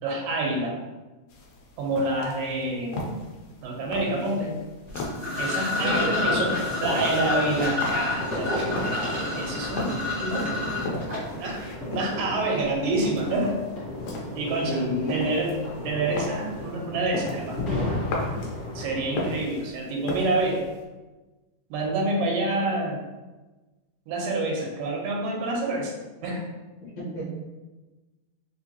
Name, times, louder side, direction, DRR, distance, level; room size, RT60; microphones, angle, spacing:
voice 1, 0.0-0.8 1.8-3.2 3.6-4.6 5.4-6.5 6.8-10.5 11.4-13.6 14.3-15.6 15.8-18.1 18.8-20.7 21.7-23.0 24.1-25.9 26.2-26.4, right 2 dB, 90° right, -1 dB, 2.4 m, -28 dB
sound 1, 1.3-20.8, left 2 dB, 85° left, 2.4 m, -38 dB
sound 2, 4.9-11.7, left 2 dB, 70° right, 0.6 m, -29 dB
voice 2, 5.8-6.5 14.6-15.3 26.8-27.2, equal, 60° left, -9 dB, 2.2 m, -30 dB
sound 3, 6.1-19.4, left 1 dB, 40° left, 1.0 m, -34 dB
5.5 x 2.6 x 2.8 m, 1.2 s
omnidirectional pair, 3.8 m